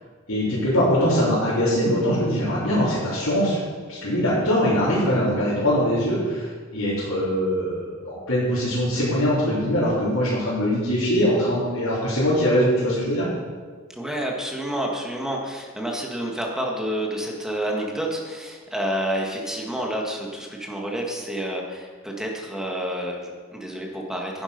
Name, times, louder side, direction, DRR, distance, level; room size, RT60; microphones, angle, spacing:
voice 1, 0.3-3.6 3.9-13.3, equal, 75° left, -10 dB, 4.0 m, -22 dB
voice 2, 14.0-24.4, equal, 5° right, -1 dB, 1.8 m, -29 dB
10.5 x 10.5 x 5.3 m, 1.5 s
head